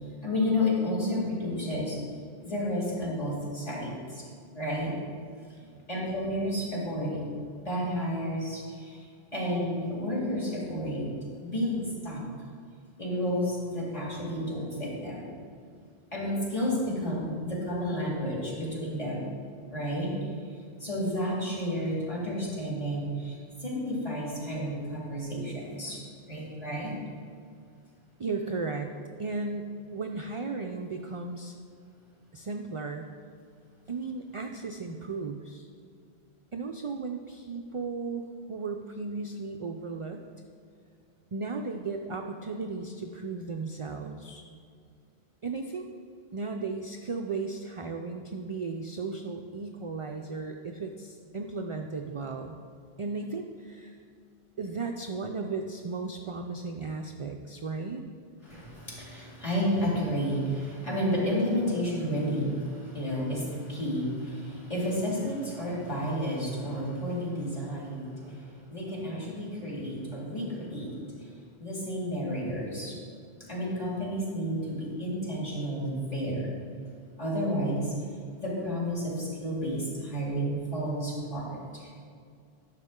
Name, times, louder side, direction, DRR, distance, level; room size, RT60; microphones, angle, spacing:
voice 1, 0.2-2.0 2.4-4.2 4.5-4.9 5.9-7.3 7.6-9.1 9.3-11.1 11.4-12.2 13.0-15.3 16.1-19.3 19.7-20.3 20.8-26.0 26.3-26.9 58.4-71.3 71.6-73.0 73.5-76.5 77.2-77.9 78.4-81.9, equal, 35° left, -6 dB, 2.3 m, -31 dB
voice 2, 28.2-28.9 29.2-31.5 32.3-33.1 33.9-35.7 36.5-40.2 41.3-44.4 45.4-45.9 46.3-52.6 53.0-54.0 54.6-58.0, right 4 dB, 55° right, 3 dB, 0.3 m, -35 dB
11.0 x 6.5 x 3.7 m, 2.3 s
omnidirectional pair, 1.1 m